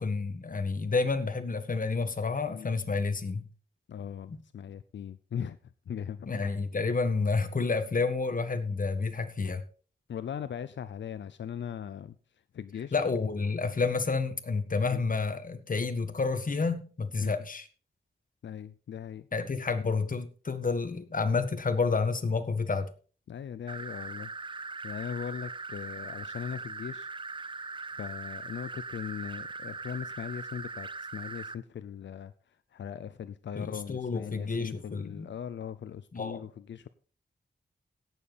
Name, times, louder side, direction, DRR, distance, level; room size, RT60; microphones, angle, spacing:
voice 1, 0.0-3.5 4.3-4.4 6.3-9.6 12.9-17.7 19.3-22.9 33.6-35.3 36.1-36.4, left 4 dB, 50° left, 1.6 m, -30 dB
voice 2, 3.9-5.6 5.9-6.3 10.1-12.1 12.5-13.0 14.9-15.0 17.2-17.3 18.4-19.3 23.3-24.3 24.8-27.1 28.0-32.3 32.7-36.9, left 8 dB, 90° left, 0.6 m, -39 dB
sound 1, 23.7-31.6, right 3 dB, 25° right, 0.6 m, -40 dB
17.0 x 7.3 x 4.1 m
wide cardioid pair, 70°, 18 cm